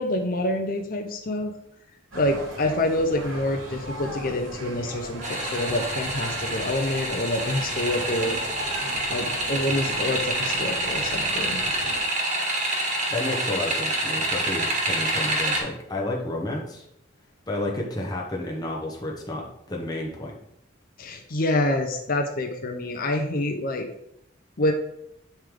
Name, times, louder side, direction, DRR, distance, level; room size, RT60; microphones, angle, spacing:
voice 1, 0.0-1.5 2.1-8.4 9.1-11.6 21.0-23.9 24.6-24.7, left 1 dB, 45° left, 3 dB, 0.7 m, -27 dB
sound 1, 2.1-12.0, right 1 dB, 90° right, 2.2 m, -38 dB
sound 2, 5.2-15.6, right 1 dB, 35° right, 1.6 m, -27 dB
voice 2, 13.1-16.8 17.5-20.3, left 1 dB, 20° left, -1 dB, 1.1 m, -31 dB
10.0 x 3.4 x 3.7 m, 0.76 s
head